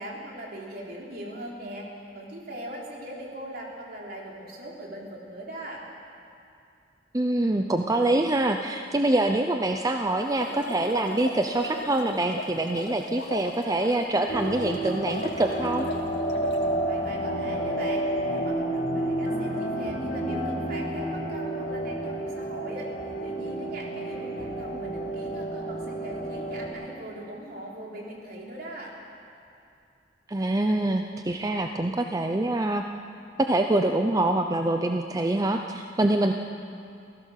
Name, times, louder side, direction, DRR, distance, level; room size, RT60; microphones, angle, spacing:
voice 1, 0.0-1.9 2.1-5.8 16.9-28.9, right 1 dB, 60° right, -2 dB, 4.1 m, -40 dB
voice 2, 7.1-15.9 30.3-32.8 33.4-36.3, right 2 dB, 20° right, 4 dB, 0.7 m, -25 dB
sound 1, 10.2-16.7, left 2 dB, 80° left, 2.1 m, -38 dB
sound 2, 14.3-26.7, right 1 dB, 60° left, 4.4 m, -30 dB
27.5 x 16.0 x 6.6 m, 2.6 s
head